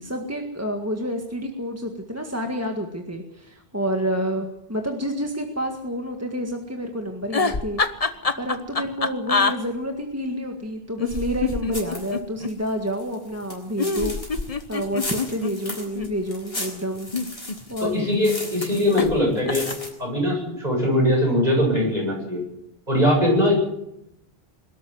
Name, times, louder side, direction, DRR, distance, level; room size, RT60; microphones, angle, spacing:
voice 1, 0.0-14.1 14.7-17.1 17.7-18.1, equal, 15° right, 3 dB, 1.8 m, -29 dB
sound 1, 7.2-9.5 11.0-12.5 13.8-16.1 17.0-17.9 19.0-19.2 19.5-19.9, left 4 dB, 35° left, 1.1 m, -25 dB
sound 2, 11.7-12.2 12.5-19.1 19.4-19.9, left 1 dB, 75° left, 5.8 m, -36 dB
voice 2, 17.8-19.7 20.0-22.4 22.9-23.5, left 1 dB, 40° right, -1 dB, 8.3 m, -21 dB
22.5 x 13.0 x 9.5 m, 0.81 s
omnidirectional pair, 1.0 m